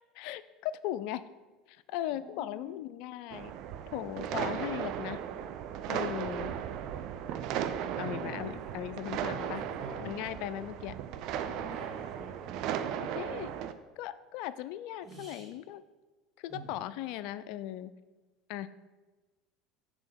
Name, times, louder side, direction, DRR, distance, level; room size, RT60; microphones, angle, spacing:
voice 1, 0.2-1.2 1.7-3.5 3.9-5.2 5.9-6.5 8.0-9.6 10.0-11.0 13.0-13.5 14.0-15.8 16.4-17.9 18.5-18.7, left 13 dB, 65° left, 15 dB, 0.3 m, -38 dB
voice 2, 2.1-2.8 6.0-6.4 7.9-8.5 9.3-10.1 10.5-10.7 11.4-12.6 15.0-15.6 16.5-16.7, right 2 dB, 5° right, -9 dB, 2.5 m, -47 dB
sound 1, 3.3-13.7, right 9 dB, 60° right, 0.5 m, -36 dB
6.9 x 3.7 x 6.2 m, 1.2 s
hypercardioid pair, 80°, 0 cm